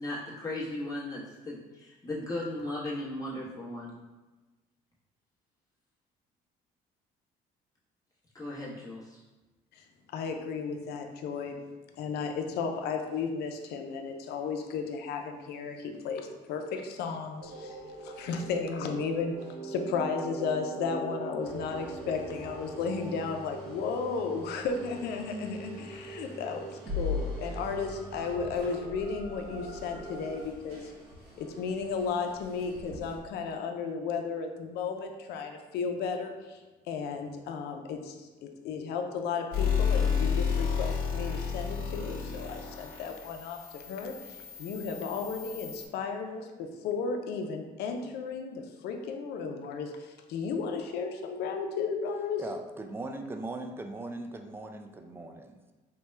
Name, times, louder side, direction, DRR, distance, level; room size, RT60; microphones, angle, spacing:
voice 1, 0.0-3.9 8.3-9.2, left 1 dB, 20° left, -6 dB, 0.9 m, -36 dB
voice 2, 10.1-11.6 12.0-19.3 19.6-30.9 31.4-52.4, left 5 dB, 75° left, 4 dB, 0.5 m, -34 dB
sound 1, 17.4-30.4, left 1 dB, 40° right, 0.7 m, -40 dB
sound 2, 21.4-33.2, equal, 65° right, 0.9 m, -50 dB
sound 3, 39.5-45.9, left 6 dB, 60° left, 1.1 m, -31 dB
voice 3, 52.4-55.7, right 2 dB, 15° right, 5 dB, 0.3 m, -39 dB
4.4 x 2.1 x 3.2 m, 1.2 s
cardioid pair, 110°, 17 cm